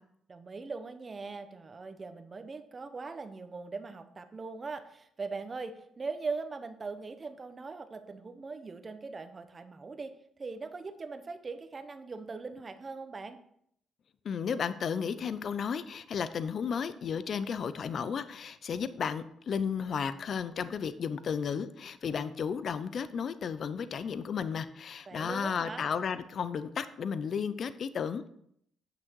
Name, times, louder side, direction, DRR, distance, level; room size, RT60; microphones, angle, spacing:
voice 1, 0.3-10.1 10.4-13.4 25.1-25.9, right 4 dB, 30° right, 9 dB, 1.0 m, -40 dB
voice 2, 14.2-28.3, left 6 dB, 55° left, 13 dB, 0.5 m, -33 dB
9.0 x 6.2 x 4.6 m, 0.71 s
cardioid pair, 90°, 0 cm